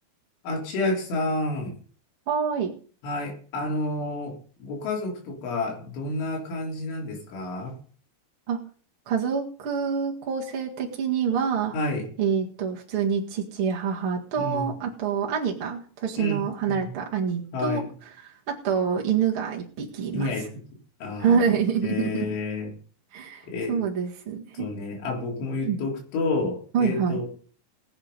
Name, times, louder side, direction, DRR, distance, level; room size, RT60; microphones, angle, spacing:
voice 1, 0.4-1.8 3.0-7.8 11.7-12.1 14.4-14.7 16.2-16.9 17.5-17.9 20.1-20.5 21.0-21.5 21.8-22.7 23.5-23.8 24.5-27.3, left 2 dB, 80° left, -1 dB, 6.3 m, -30 dB
voice 2, 2.3-2.7 8.5-8.6 9.0-11.7 12.2-17.8 18.2-20.3 21.2-22.3 23.1-24.7 25.6-25.8 26.7-27.2, right 7 dB, 50° right, -2 dB, 1.6 m, -26 dB
20.0 x 8.1 x 5.3 m, 0.43 s
omnidirectional pair, 5.4 m